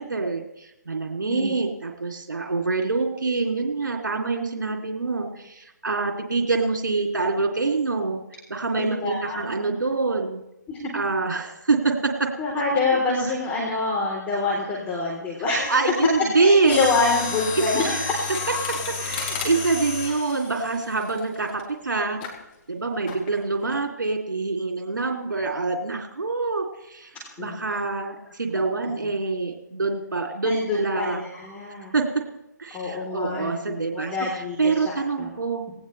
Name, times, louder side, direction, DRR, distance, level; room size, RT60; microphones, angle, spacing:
voice 1, 0.0-8.2 8.5-10.4 10.9-12.3 13.1-13.3 15.7-16.8 17.7-17.9 18.7-22.2 22.7-31.3 31.9-32.1 32.6-35.6, right 3 dB, 75° right, 2 dB, 3.0 m, -25 dB
voice 2, 8.8-9.7 10.7-10.8 12.4-15.8 16.4-18.1 27.4-27.6 28.6-28.7 30.4-31.9 32.7-35.3, left 3 dB, 15° left, -5 dB, 3.7 m, -26 dB
Mechanisms, 16.6-21.6 22.2-22.4 23.1-23.4 23.7-23.8, left 4 dB, 30° left, 4.0 m, -31 dB
19.0 x 18.5 x 3.3 m, 0.91 s
figure-of-eight pair, 145°, 10 cm